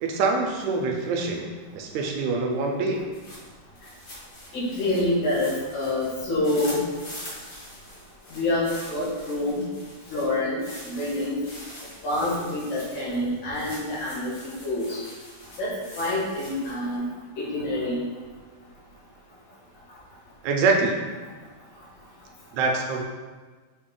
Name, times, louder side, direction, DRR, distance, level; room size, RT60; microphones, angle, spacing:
voice 1, 0.0-3.0 20.4-21.0 22.5-23.0, right 3 dB, 80° right, 1 dB, 1.8 m, -25 dB
sound 1, 3.0-17.0, left 1 dB, 50° left, 1.3 m, -44 dB
voice 2, 4.5-6.8 8.3-9.6 10.1-11.4 12.0-15.0 15.6-15.7 16.0-17.1 17.4-18.0, left 1 dB, 85° left, -6 dB, 2.8 m, -27 dB
6.3 x 2.1 x 3.7 m, 1.4 s
omnidirectional pair, 3.4 m